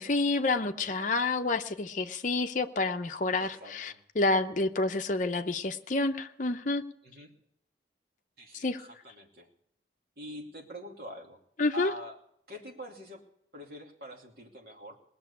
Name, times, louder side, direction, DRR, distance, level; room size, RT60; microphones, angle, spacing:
voice 1, 0.0-6.8 8.6-8.8 11.6-11.9, left 3 dB, 45° left, 6 dB, 0.7 m, -29 dB
voice 2, 3.4-4.0 7.0-7.3 8.4-9.5 10.2-11.4 11.7-12.2 12.5-13.2 13.5-14.9, equal, 60° right, 0 dB, 2.6 m, -45 dB
20.0 x 6.9 x 8.5 m, 0.69 s
head